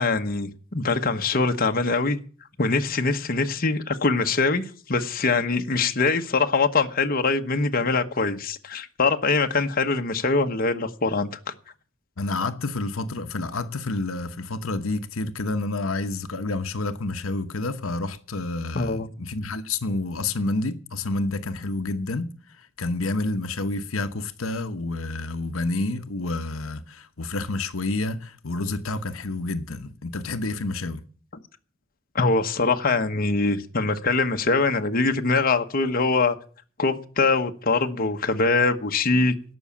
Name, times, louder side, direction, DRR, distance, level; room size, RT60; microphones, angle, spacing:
voice 1, 0.0-2.2 2.6-11.3 18.7-19.1 32.1-36.4 36.8-39.3, left 3 dB, 45° left, 1.1 m, -23 dB
voice 2, 12.2-22.3 22.8-31.0, left 2 dB, 90° left, 1.0 m, -29 dB
16.5 x 6.3 x 8.5 m
head